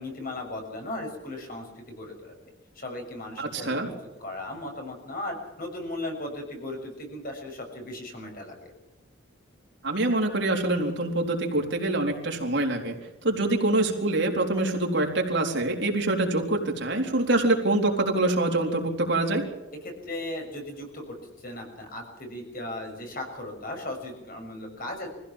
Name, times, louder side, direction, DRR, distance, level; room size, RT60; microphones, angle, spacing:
voice 1, 0.0-2.3 2.7-3.7 4.2-8.7 19.8-25.1, left 1 dB, 45° left, 2 dB, 6.5 m, -37 dB
voice 2, 3.4-3.9 9.8-13.0 13.2-19.4, right 2 dB, 55° right, 1 dB, 3.9 m, -25 dB
25.0 x 16.0 x 7.4 m, 1.0 s
head